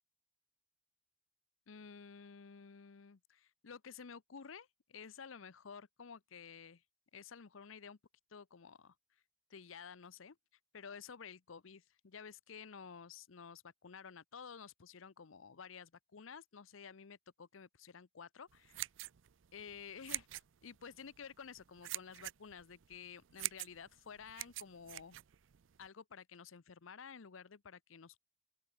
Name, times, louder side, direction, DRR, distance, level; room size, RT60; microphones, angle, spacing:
voice 1, 1.7-6.8 7.1-8.0 8.3-8.9 9.5-10.4 10.7-18.8 19.5-20.3 20.6-25.2 25.8-28.2, left 6 dB, 85° left, 0.7 m, -52 dB
sound 1, 18.5-25.9, right 17 dB, 75° right, 0.5 m, -46 dB
open air
head